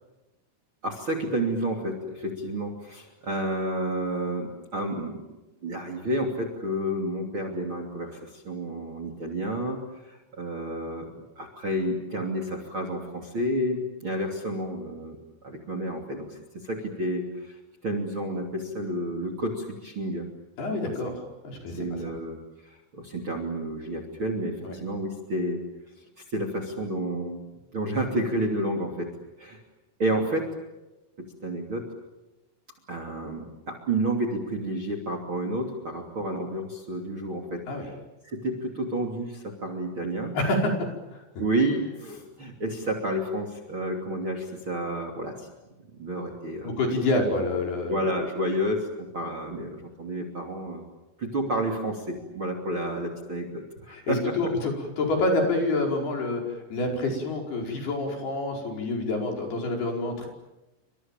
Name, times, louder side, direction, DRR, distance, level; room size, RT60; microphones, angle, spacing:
voice 1, 0.8-5.2 5.6-11.1 11.4-15.2 15.4-16.4 16.6-20.3 21.7-22.4 22.6-25.6 26.3-27.4 27.7-29.1 29.4-29.6 30.0-30.5 31.2-31.8 32.9-37.6 38.2-40.3 41.4-45.5 45.9-46.7 47.9-50.8 51.2-54.3, right 1 dB, 30° right, 3 dB, 3.0 m, -30 dB
voice 2, 20.6-21.2 21.4-21.8 24.6-24.8 37.7-37.9 40.3-41.2 46.6-48.0 53.9-60.3, left 2 dB, 55° left, 1 dB, 6.8 m, -27 dB
29.5 x 26.0 x 7.4 m, 1.0 s
omnidirectional pair, 5.6 m